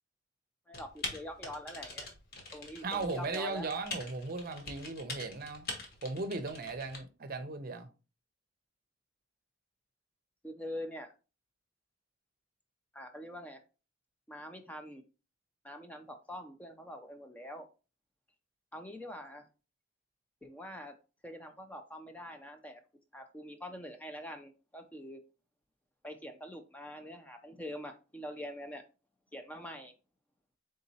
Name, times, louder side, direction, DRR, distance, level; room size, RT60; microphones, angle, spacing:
Typing, 0.7-7.0, left 2 dB, 50° left, 1.1 m, -43 dB
voice 1, 0.7-2.1 2.5-3.7 10.4-11.1 12.9-13.6 14.3-15.0 15.6-17.7 18.7-19.4 20.4-20.9 21.2-22.8 23.1-25.2 26.0-28.8 29.3-29.9, equal, 10° left, 0.4 m, -44 dB
voice 2, 2.8-5.7 6.0-7.9, right 3 dB, 50° right, 0.6 m, -37 dB
4.0 x 3.7 x 2.7 m
head